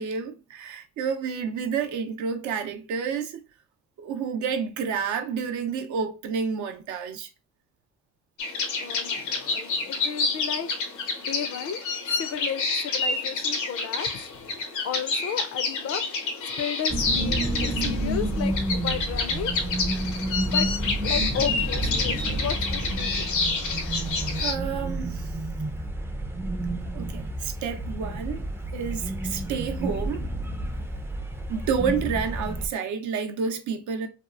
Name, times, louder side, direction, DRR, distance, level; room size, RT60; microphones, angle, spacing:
voice 1, 0.0-3.4 4.0-7.3 24.3-25.3 26.9-30.3 31.5-34.1, right 6 dB, 75° right, 0.6 m, -30 dB
sound 1, 8.4-24.5, left 4 dB, 90° left, 0.7 m, -29 dB
voice 2, 8.8-10.7 11.2-11.8 12.1-14.3 14.8-16.0 16.6-19.5 20.5-20.7 21.0-23.3, left 8 dB, 55° left, 0.4 m, -33 dB
sound 2, 16.9-32.7, right 1 dB, 10° right, 0.3 m, -30 dB
2.8 x 2.4 x 2.3 m
cardioid pair, 90°, 30 cm